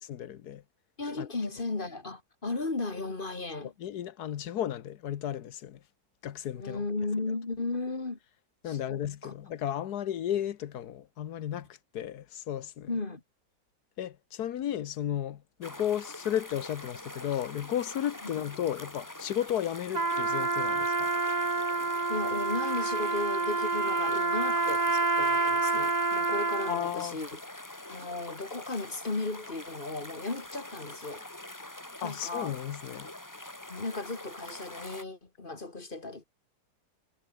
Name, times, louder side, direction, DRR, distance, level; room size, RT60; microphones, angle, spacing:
voice 1, 0.1-0.6 1.2-1.3 3.6-5.8 6.2-6.8 8.6-11.7 11.9-12.9 14.0-21.1 26.7-27.2 32.0-33.1, left 10 dB, 60° left, 1.4 m, -34 dB
voice 2, 1.0-3.7 6.5-8.2 8.7-9.3 12.9-13.2 18.2-18.4 22.1-27.4 27.9-31.2 32.0-32.6 33.7-36.2, left 3 dB, 30° left, 2.2 m, -35 dB
sound 1, 15.6-35.0, left 1 dB, 10° left, 1.9 m, -45 dB
Trumpet, 19.9-26.9, right 3 dB, 25° right, 1.6 m, -28 dB
omnidirectional pair, 2.0 m